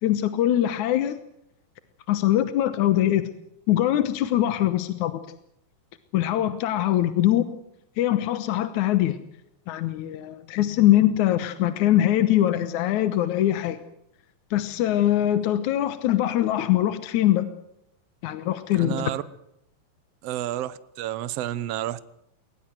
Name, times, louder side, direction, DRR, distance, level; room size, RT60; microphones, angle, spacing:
voice 1, 0.0-1.2 2.1-3.3 3.7-5.2 6.1-7.5 8.0-9.2 9.7-13.8 14.5-17.5 18.2-19.0, left 13 dB, 65° left, 12 dB, 2.2 m, -22 dB
voice 2, 18.7-19.2 20.2-22.0, right 13 dB, 75° right, 16 dB, 1.4 m, -30 dB
21.5 x 19.5 x 7.8 m, 0.79 s
omnidirectional pair, 4.1 m